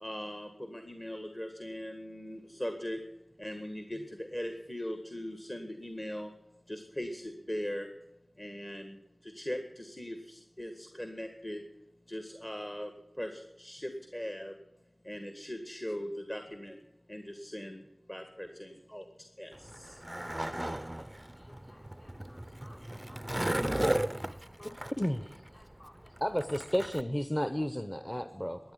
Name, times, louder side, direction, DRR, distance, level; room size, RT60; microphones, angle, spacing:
voice 1, 0.0-3.0 3.4-6.3 6.7-7.9 8.4-8.9 9.4-11.6 12.1-12.9 13.2-14.5 15.1-16.7 17.1-17.8 18.1-19.0 19.4-19.5, equal, 30° left, 6 dB, 1.8 m, -39 dB
Skateboard, 19.5-27.0, right 1 dB, 20° right, 0.5 m, -35 dB
voice 2, 19.8-20.6 21.4-24.9 25.2-25.3 25.5-26.1, left 1 dB, 55° left, 0 dB, 5.3 m, -56 dB
voice 3, 26.2-28.7, equal, 15° left, 10 dB, 0.9 m, -32 dB
13.0 x 9.8 x 9.5 m, 0.97 s
wide cardioid pair, 45°, 0 cm